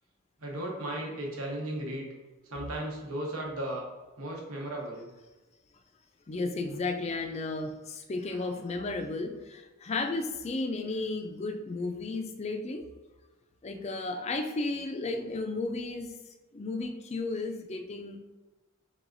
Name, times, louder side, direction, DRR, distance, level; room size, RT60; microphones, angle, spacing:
voice 1, 0.4-2.1 2.5-3.9 4.2-5.1 8.3-8.7, right 1 dB, 75° right, -1 dB, 1.0 m, -36 dB
voice 2, 6.3-12.8 13.6-16.1 16.5-18.2, left 3 dB, 30° left, 6 dB, 0.4 m, -33 dB
4.7 x 3.5 x 2.6 m, 1.2 s
head